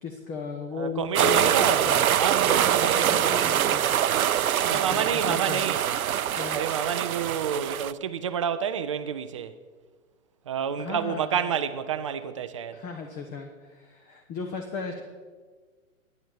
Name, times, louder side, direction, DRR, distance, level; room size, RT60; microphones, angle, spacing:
voice 1, 0.0-2.0 2.4-4.4 4.7-5.6 6.3-6.6 10.8-11.4 12.7-15.0, left 5 dB, 20° left, 1.2 m, -36 dB
voice 2, 0.7-1.8 2.2-3.4 4.6-5.9 6.5-9.6 10.5-12.8, right 8 dB, 25° right, 0.4 m, -29 dB
sound 1, 1.1-7.9, right 10 dB, 85° right, 0.6 m, -24 dB
11.0 x 10.5 x 7.3 m
hypercardioid pair, 135°, 41 cm